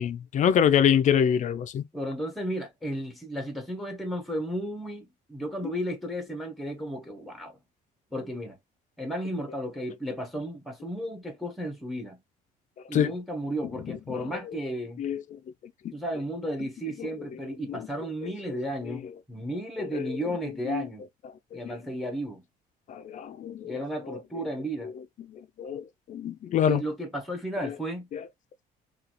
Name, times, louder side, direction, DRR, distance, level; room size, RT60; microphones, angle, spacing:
voice 1, 0.0-1.9 5.6-5.7 12.9-13.1 13.8-14.3 15.0-15.4 15.8-15.9 17.0-17.1 17.7-17.9 18.2-18.6 18.9-19.0 19.8-20.2 20.7-20.9 21.5-21.7 22.9-23.8 24.1-24.2 25.3-26.8 27.6-27.7 28.1-28.2, left 9 dB, 45° left, 0.4 m, -26 dB
voice 2, 1.9-7.6 8.1-8.6 9.0-12.2 12.9-15.0 15.9-21.1 21.5-22.4 23.6-24.9 26.6-28.1, equal, ahead, 0.9 m, -34 dB
3.9 x 2.3 x 2.9 m
cardioid pair, 110°, 17 cm